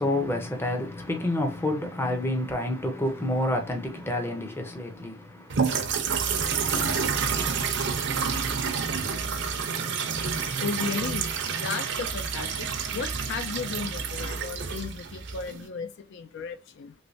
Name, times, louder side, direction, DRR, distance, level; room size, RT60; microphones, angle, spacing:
voice 1, 0.0-5.6, left 1 dB, 10° left, 0.6 m, -28 dB
sound 1, 5.5-15.7, right 6 dB, 60° right, 0.6 m, -29 dB
voice 2, 10.6-11.3 11.6-16.9, left 5 dB, 60° left, 0.3 m, -35 dB
3.1 x 3.0 x 2.6 m
head